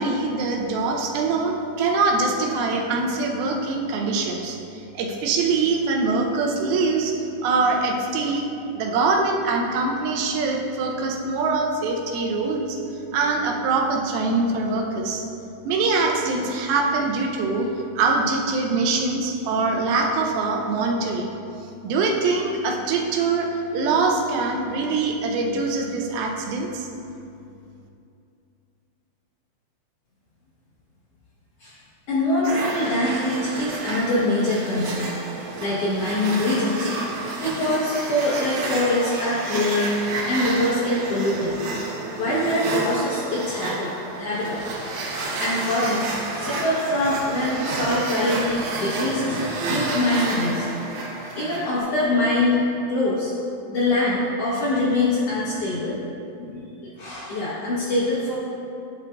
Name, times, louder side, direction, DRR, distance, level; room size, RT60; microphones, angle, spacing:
voice 1, 0.0-8.4 8.8-12.8 13.1-15.2 15.7-17.7 18.0-21.3 21.8-26.9, right 3 dB, 85° right, 2 dB, 2.5 m, -23 dB
voice 2, 32.1-36.9 37.4-39.9 40.3-41.7 42.2-44.6 45.4-49.4 49.6-50.6 51.3-52.6 52.9-53.3 53.7-56.0 56.4-58.3, left 1 dB, 80° left, -9 dB, 1.4 m, -24 dB
sound 1, 32.4-51.8, right 2 dB, 70° right, 2.0 m, -30 dB
10.0 x 6.0 x 2.3 m, 2.6 s
omnidirectional pair, 4.2 m